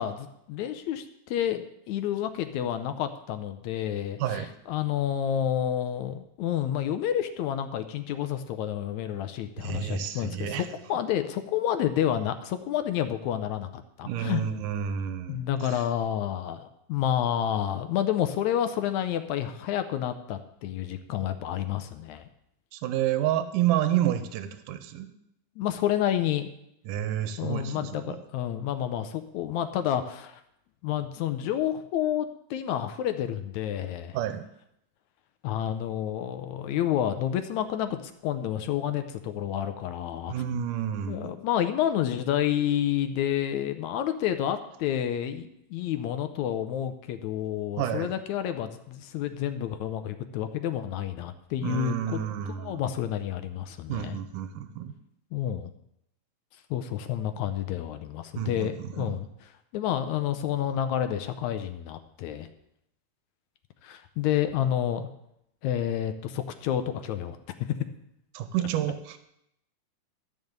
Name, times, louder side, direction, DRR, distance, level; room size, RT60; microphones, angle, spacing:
voice 1, 0.0-14.4 15.3-22.2 25.6-26.5 27.4-30.4 30.8-34.2 35.4-40.3 41.1-52.2 52.6-54.2 55.3-55.7 56.7-59.3 59.7-62.5 63.8-65.1 65.6-67.4, left 10 dB, 75° left, 9 dB, 1.8 m, -29 dB
voice 2, 9.6-10.7 14.0-15.8 22.7-25.1 26.9-28.2 34.1-34.4 40.3-41.3 47.8-48.1 51.6-52.8 53.9-54.9 58.4-59.1 68.3-69.2, right 11 dB, 85° right, 9 dB, 2.4 m, -30 dB
13.0 x 5.5 x 7.9 m, 0.79 s
omnidirectional pair, 3.8 m